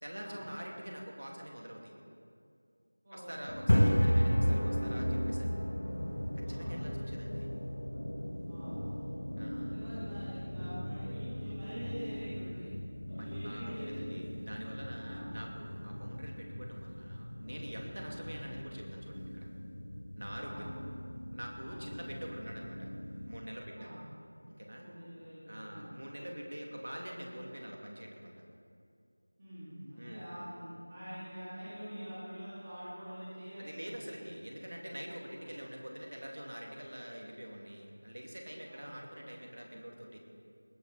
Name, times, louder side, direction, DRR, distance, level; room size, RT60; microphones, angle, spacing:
voice 1, 0.0-1.9 3.1-5.5 6.3-7.5 9.4-9.8 13.2-19.5 20.2-20.7 21.3-22.9 23.3-23.9 24.5-24.9 25.5-28.4 29.9-30.3 33.6-40.2, equal, 55° right, -1 dB, 2.9 m, -45 dB
sound 1, 3.5-23.4, equal, 60° left, 2.0 m, -35 dB
voice 2, 8.5-9.2 9.6-12.7 13.1-14.3 15.0-15.3 18.1-18.2 20.4-20.7 21.6-21.8 23.8-24.0 24.8-25.9 29.4-34.3 35.3-35.4 38.7-39.0, equal, 15° right, -14 dB, 3.8 m, -46 dB
20.0 x 12.0 x 4.4 m, 2.3 s
figure-of-eight pair, 180°, 0 cm